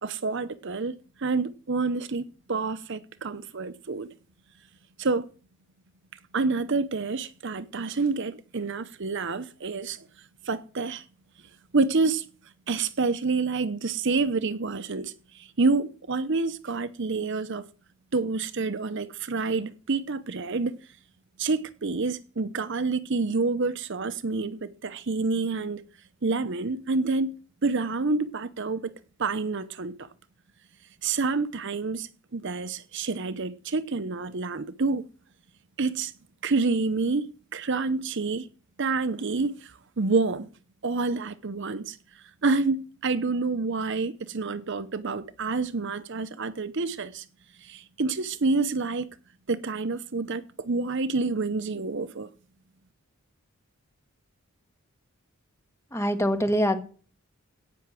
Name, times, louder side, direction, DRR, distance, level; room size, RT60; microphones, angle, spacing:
voice 1, 0.0-4.1 5.0-5.3 6.3-10.1 10.4-11.0 11.7-12.3 12.7-17.7 18.1-20.8 21.4-25.9 26.2-27.4 27.6-28.9 29.2-30.1 31.0-35.0 35.8-36.1 36.4-38.5 38.8-40.5 40.8-42.0 42.4-47.2 47.6-49.1 49.5-52.3, right 3 dB, 55° right, 0.8 m, -28 dB
voice 2, 55.9-56.8, equal, 15° left, 1.5 m, -24 dB
17.0 x 5.9 x 7.6 m
head